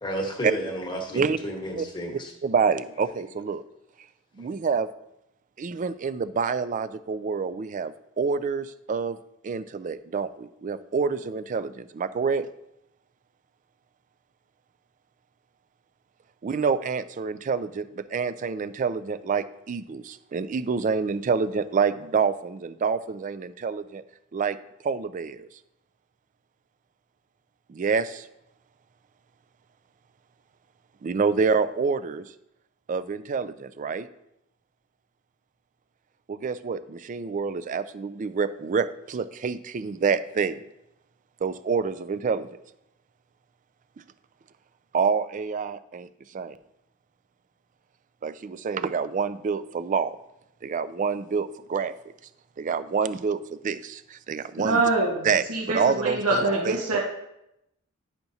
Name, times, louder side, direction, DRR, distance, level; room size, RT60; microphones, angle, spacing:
voice 1, 0.0-2.3 4.4-4.5, equal, 20° left, 2 dB, 1.1 m, -32 dB
voice 2, 2.4-3.6 4.4-4.9 5.6-9.2 9.4-12.5 16.4-24.0 24.3-24.6 24.8-25.5 27.7-28.3 31.0-32.3 32.9-34.1 36.3-40.6 41.4-42.5 44.9-46.6 48.2-50.2 50.6-52.1 52.6-54.8 55.2-55.4 55.7-57.0, right 5 dB, 35° right, 14 dB, 0.3 m, -27 dB
voice 3, 54.6-57.0, right 3 dB, 80° right, -2 dB, 1.3 m, -25 dB
10.5 x 5.8 x 2.7 m, 0.84 s
head